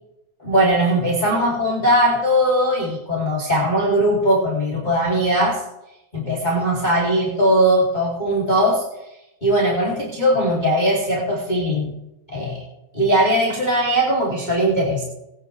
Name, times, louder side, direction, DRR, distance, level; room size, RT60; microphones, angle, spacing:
voice 1, 0.4-5.6 6.1-8.8 9.4-11.9 12.3-12.6 12.9-15.0, equal, 15° left, -5 dB, 2.3 m, -19 dB
21.5 x 9.4 x 3.2 m, 0.91 s
omnidirectional pair, 3.8 m